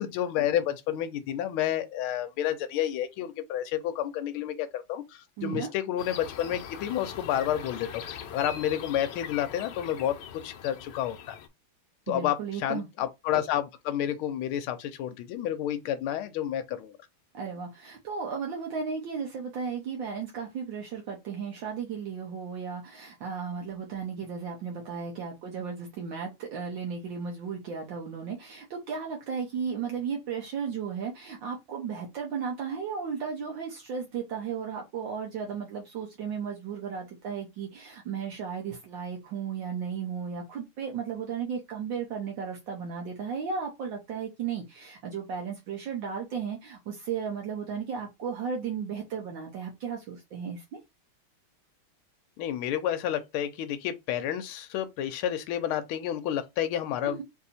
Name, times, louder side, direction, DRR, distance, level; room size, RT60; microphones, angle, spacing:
voice 1, 0.0-11.4 12.1-17.0 52.4-57.2, left 11 dB, 90° left, 1.4 m, -30 dB
voice 2, 5.4-5.7 12.1-12.8 17.3-50.8 57.0-57.2, right 6 dB, 70° right, 1.6 m, -35 dB
sound 1, 6.0-11.5, left 8 dB, 70° left, 1.2 m, -42 dB
4.0 x 2.7 x 4.1 m
omnidirectional pair, 2.3 m